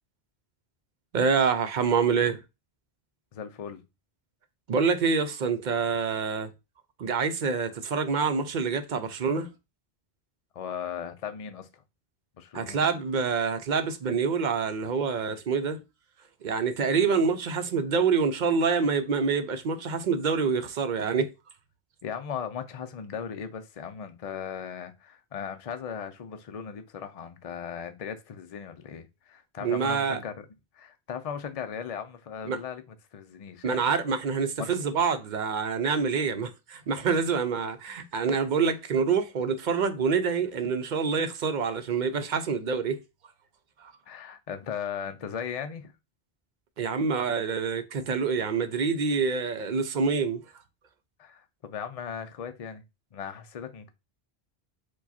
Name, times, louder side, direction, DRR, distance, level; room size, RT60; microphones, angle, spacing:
voice 1, 1.1-2.4 4.7-6.5 7.0-9.5 12.5-15.8 16.4-21.3 29.6-30.2 32.5-32.6 33.6-43.0 43.8-43.9 46.8-50.4, right 5 dB, 55° right, 0.6 m, -26 dB
voice 2, 3.3-3.8 10.5-11.8 12.4-12.8 22.0-30.5 30.7-33.8 34.6-34.7 44.1-45.9 51.2-52.8 53.1-53.9, left 7 dB, 45° left, 0.6 m, -37 dB
4.8 x 2.3 x 4.1 m
omnidirectional pair, 1.1 m